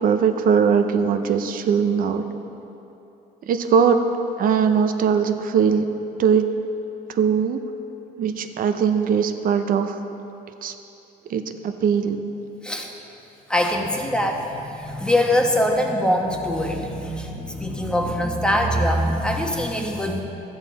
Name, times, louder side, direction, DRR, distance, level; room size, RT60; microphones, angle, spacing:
voice 1, 0.0-2.2 3.5-4.0 4.4-5.9 6.2-6.5 7.1-7.6 8.2-10.0 10.6-10.7 11.3-12.2, right 7 dB, 55° right, 8 dB, 0.7 m, -20 dB
voice 2, 13.5-20.2, left 1 dB, 5° left, 1 dB, 1.2 m, -23 dB
13.0 x 8.8 x 4.1 m, 3.0 s
cardioid pair, 110°, 17 cm